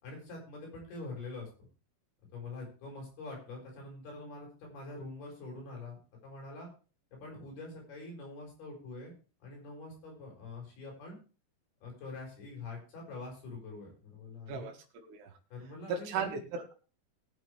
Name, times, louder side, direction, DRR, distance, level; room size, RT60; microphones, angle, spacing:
voice 1, 0.0-1.5 2.3-6.0 6.2-6.7 7.1-9.1 9.4-11.2 11.8-14.7 15.5-16.4, left 3 dB, 70° left, -1 dB, 7.7 m, -45 dB
voice 2, 14.5-15.3 15.9-16.7, right 6 dB, 75° right, 2 dB, 3.9 m, -37 dB
20.5 x 7.0 x 3.4 m, 0.35 s
omnidirectional pair, 4.7 m